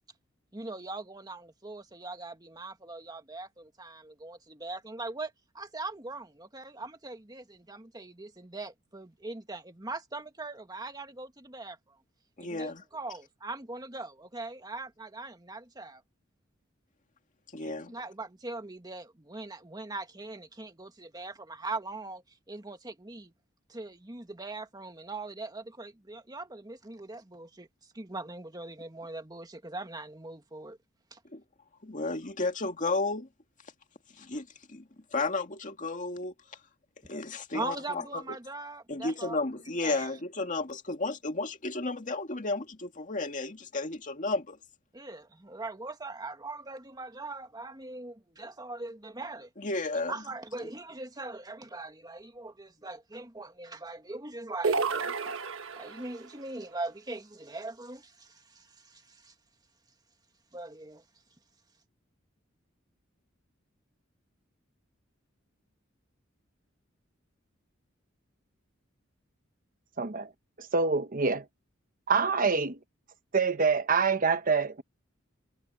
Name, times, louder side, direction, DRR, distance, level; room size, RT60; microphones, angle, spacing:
voice 1, 0.5-11.8 12.4-16.0 17.6-22.2 22.5-23.3 23.7-27.7 27.9-30.8 31.1-31.2 37.5-39.4 39.8-40.1 44.9-49.5 50.1-55.3 55.8-59.3 60.5-61.0, right 2 dB, 20° right, 1.8 m, -41 dB
voice 2, 12.4-12.8 17.5-17.9 31.3-31.4 31.8-33.3 34.2-36.3 37.1-38.4 38.9-44.6 49.6-50.2, left 3 dB, 40° left, 2.1 m, -33 dB
sound 1, 54.6-56.2, right 4 dB, 85° right, 1.4 m, -30 dB
voice 3, 70.0-70.3 70.6-71.4 72.1-72.8 73.3-74.8, right 4 dB, 45° right, 1.0 m, -26 dB
head